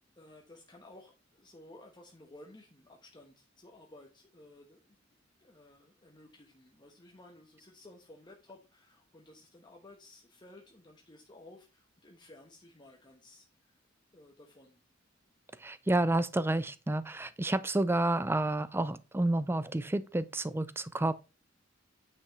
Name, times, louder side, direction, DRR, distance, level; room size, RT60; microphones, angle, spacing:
voice 1, 0.0-13.8 14.1-14.8, left 2 dB, 25° left, 1.1 m, -56 dB
voice 2, 15.6-21.1, right 2 dB, 10° right, 0.4 m, -30 dB
9.5 x 5.7 x 3.1 m
head